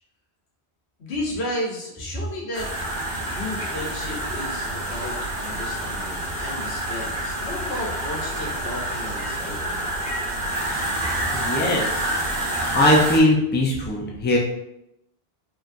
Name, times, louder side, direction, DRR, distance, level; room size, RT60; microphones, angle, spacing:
voice 1, 1.0-2.7 3.3-9.8, left 1 dB, 85° left, -2 dB, 1.3 m, -33 dB
sound 1, 2.5-13.2, right 1 dB, 50° right, 1.0 m, -28 dB
voice 2, 11.3-11.9 12.7-14.4, left 1 dB, 10° left, -2 dB, 0.6 m, -19 dB
4.8 x 3.0 x 2.6 m, 0.82 s
omnidirectional pair, 1.1 m